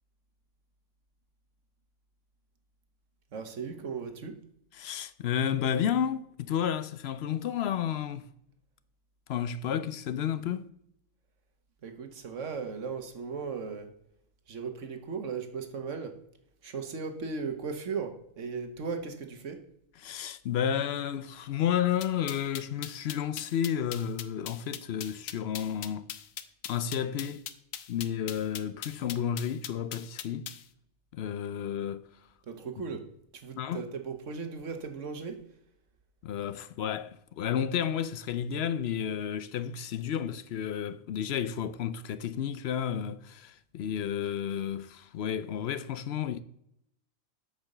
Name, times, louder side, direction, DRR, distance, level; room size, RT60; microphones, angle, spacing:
voice 1, 3.3-4.4 11.8-13.9 14.5-16.2 16.6-19.6 32.5-35.4, right 5 dB, 65° right, 1.4 m, -37 dB
voice 2, 4.7-8.3 9.3-10.7 20.0-26.1 26.7-27.4 27.9-30.6 31.1-32.0 33.6-33.8 36.2-46.4, left 9 dB, 65° left, 0.7 m, -31 dB
sound 1, 22.0-30.6, left 10 dB, 80° left, 1.1 m, -40 dB
8.7 x 5.2 x 6.5 m
omnidirectional pair, 1.4 m